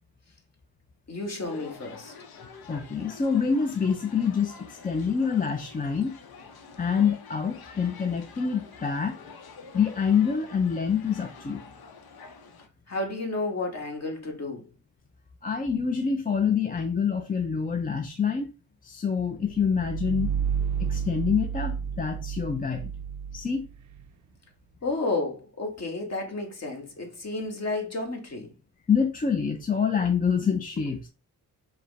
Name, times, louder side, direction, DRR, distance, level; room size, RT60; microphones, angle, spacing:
voice 1, 1.1-2.1 12.9-14.7 24.8-28.5, left 2 dB, 45° left, 1.5 m, -31 dB
sound 1, 1.4-12.7, left 4 dB, 75° left, 0.8 m, -47 dB
voice 2, 2.7-6.2 6.8-9.2 9.7-11.6 15.4-18.5 18.8-20.3 20.8-22.9 23.3-23.6 28.9-31.1, left 6 dB, 25° left, 0.4 m, -26 dB
sound 2, 19.4-24.1, right 7 dB, 50° right, 0.4 m, -31 dB
4.7 x 2.1 x 4.6 m
cardioid pair, 90°, 37 cm